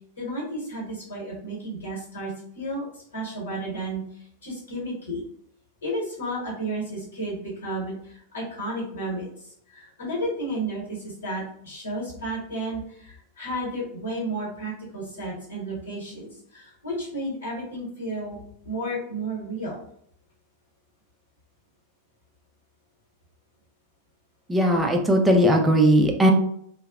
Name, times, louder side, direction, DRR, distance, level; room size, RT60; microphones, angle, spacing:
voice 1, 0.2-5.2 5.8-18.4 18.6-19.8, right 1 dB, 70° left, -5 dB, 1.2 m, -32 dB
voice 2, 24.5-26.3, equal, 10° right, 2 dB, 0.5 m, -18 dB
2.7 x 2.2 x 2.3 m, 0.68 s
figure-of-eight pair, 90°, 0 cm